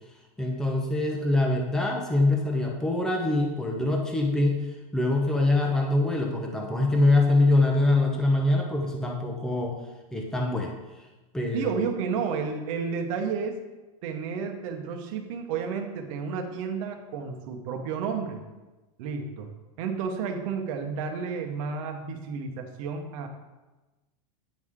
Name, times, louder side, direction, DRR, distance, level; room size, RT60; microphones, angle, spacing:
voice 1, 0.4-4.6 4.9-9.8 10.1-10.7 11.3-11.8, left 2 dB, 5° left, 0 dB, 0.8 m, -24 dB
voice 2, 11.5-13.6 14.0-18.4 19.0-19.5 19.8-23.3, right 6 dB, 60° right, 5 dB, 1.1 m, -31 dB
9.4 x 4.7 x 3.7 m, 1.1 s
supercardioid pair, 140°, 19 cm